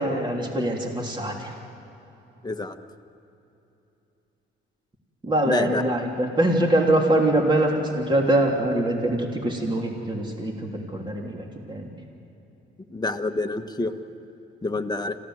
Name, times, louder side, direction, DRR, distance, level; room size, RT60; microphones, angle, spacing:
voice 1, 0.0-1.5 5.2-11.9, right 1 dB, 25° right, 1 dB, 3.2 m, -23 dB
voice 2, 2.4-2.7 5.4-5.9 12.9-13.9 14.6-15.2, left 2 dB, 20° left, 5 dB, 1.3 m, -27 dB
26.0 x 16.0 x 7.9 m, 3.0 s
cardioid pair, 90°, 20 cm